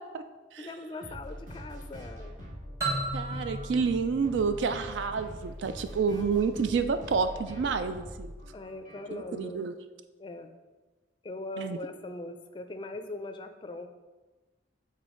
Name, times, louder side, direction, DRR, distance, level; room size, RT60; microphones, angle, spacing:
voice 1, 0.6-2.4 8.5-9.7 10.2-10.5 11.2-13.9, left 2 dB, 25° left, 7 dB, 0.4 m, -40 dB
sound 1, 1.0-9.4, equal, 45° right, 1.6 m, -44 dB
sound 2, 2.8-5.5, right 1 dB, 15° right, 1.3 m, -35 dB
voice 2, 3.1-8.3 9.1-9.7 11.6-11.8, right 5 dB, 75° right, 9 dB, 0.4 m, -29 dB
6.9 x 4.1 x 3.7 m, 1.2 s
head